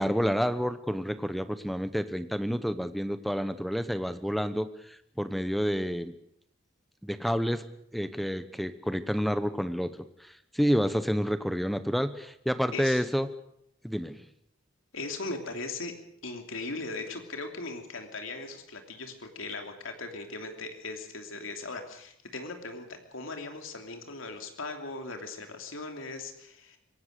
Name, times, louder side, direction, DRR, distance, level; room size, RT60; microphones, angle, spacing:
voice 1, 0.0-6.1 7.0-7.6 7.9-9.9 10.2-13.3 13.8-14.3, equal, ahead, 12 dB, 0.9 m, -29 dB
voice 2, 12.7-13.0 14.9-15.9 16.2-26.8, left 3 dB, 85° left, 5 dB, 3.0 m, -39 dB
25.0 x 17.5 x 6.7 m, 0.72 s
head